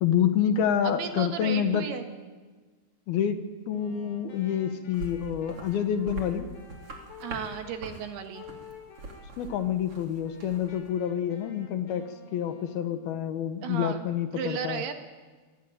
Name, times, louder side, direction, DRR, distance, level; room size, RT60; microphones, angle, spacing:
voice 1, 0.0-1.9 3.1-6.5 9.4-14.8, left 9 dB, 70° left, 9 dB, 2.8 m, -28 dB
voice 2, 0.8-2.0 7.2-8.5 13.6-14.1 14.3-14.9, right 7 dB, 70° right, 6 dB, 3.5 m, -34 dB
Wind instrument woodwind instrument, 3.6-7.8 8.3-9.7 10.1-13.4, left 5 dB, 50° left, 4.4 m, -50 dB
sound 1, 4.9-10.9, right 2 dB, 35° right, 3.8 m, -43 dB
25.0 x 19.0 x 9.1 m, 1.4 s
omnidirectional pair, 4.9 m